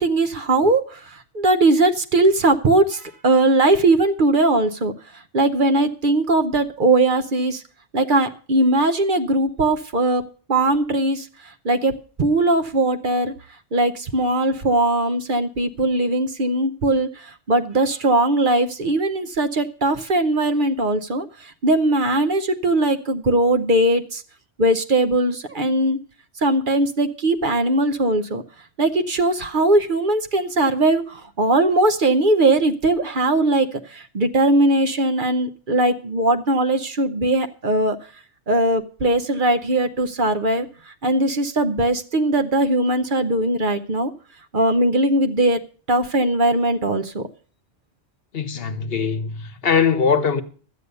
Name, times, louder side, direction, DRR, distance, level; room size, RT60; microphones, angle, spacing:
voice 1, 0.0-7.6 7.9-10.2 10.5-13.3 13.7-24.2 24.6-26.0 26.4-28.4 28.8-38.0 38.5-44.1 44.5-45.6 45.9-47.3, right 2 dB, 50° right, 0.9 m, -20 dB
voice 2, 48.3-50.4, left 6 dB, 60° left, 1.1 m, -21 dB
12.5 x 8.3 x 6.7 m
omnidirectional pair, 1.2 m